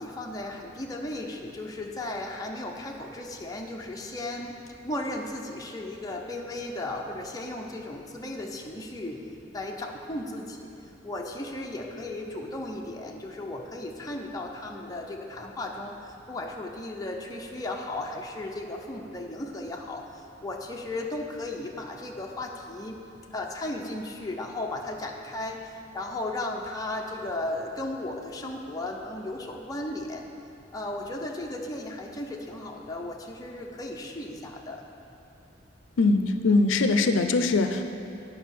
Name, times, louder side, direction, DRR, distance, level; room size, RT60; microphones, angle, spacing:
voice 1, 0.0-4.6 4.8-9.3 9.5-10.7 11.0-23.0 23.3-30.3 30.7-34.8, left 1 dB, 20° left, 0 dB, 0.7 m, -35 dB
voice 2, 36.0-37.8, left 3 dB, 85° left, 7 dB, 0.5 m, -22 dB
9.2 x 5.4 x 5.9 m, 2.7 s
head